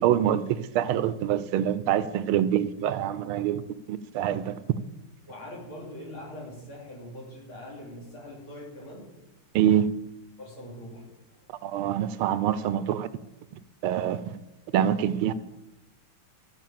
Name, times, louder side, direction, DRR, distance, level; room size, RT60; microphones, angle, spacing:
voice 1, 0.0-3.6 3.9-4.6 9.5-9.9 11.6-13.1 13.8-14.2 14.7-15.3, right 10 dB, 80° right, 1.4 m, -25 dB
voice 2, 5.3-9.1 10.4-11.5, left 1 dB, 70° left, 4.4 m, -42 dB
14.0 x 5.7 x 7.4 m
omnidirectional pair, 2.4 m